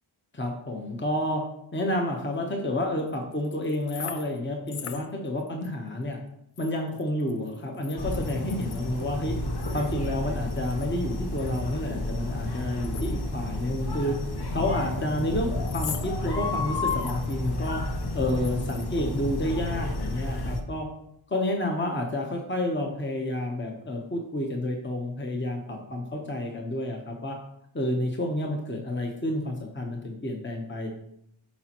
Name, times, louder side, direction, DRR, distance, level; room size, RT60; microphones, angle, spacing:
voice 1, 0.3-1.4 1.7-6.2 6.6-9.4 9.7-14.2 14.5-17.8 18.1-20.9 21.3-27.4 27.7-30.9, left 1 dB, 25° left, 1 dB, 1.0 m, -30 dB
sound 1, 3.0-4.4 4.7-5.7 6.0-6.1 6.6-9.0 9.6-10.9 11.3-13.6 13.9-14.1 14.8-15.2 15.7-16.1 16.5-19.0, left 8 dB, 90° left, 0.7 m, -42 dB
sound 2, 8.0-20.6, left 2 dB, 50° left, 1.0 m, -31 dB
8.5 x 5.1 x 3.0 m, 0.75 s
wide cardioid pair, 65°, 49 cm